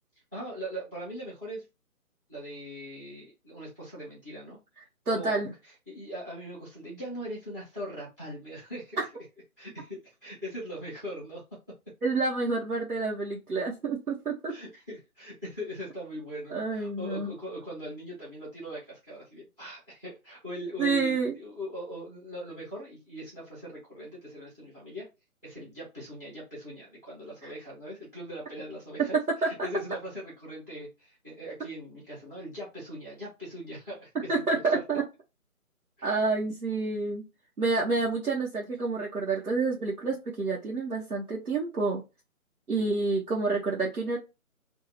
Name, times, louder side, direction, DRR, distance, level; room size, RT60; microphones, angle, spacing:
voice 1, 0.3-1.6 2.3-4.6 5.1-9.1 9.6-11.4 14.5-25.1 25.4-34.8 36.0-36.2, equal, 10° right, -4 dB, 0.7 m, -40 dB
voice 2, 5.1-5.5 9.0-9.1 12.0-14.5 16.5-17.3 20.8-21.3 27.4-27.5 29.4-29.5 34.3-35.0 36.0-37.2 37.6-42.0 42.7-44.2, right 3 dB, 85° right, -3 dB, 1.1 m, -28 dB
2.7 x 2.4 x 4.1 m, 0.26 s
figure-of-eight pair, 150°, 44 cm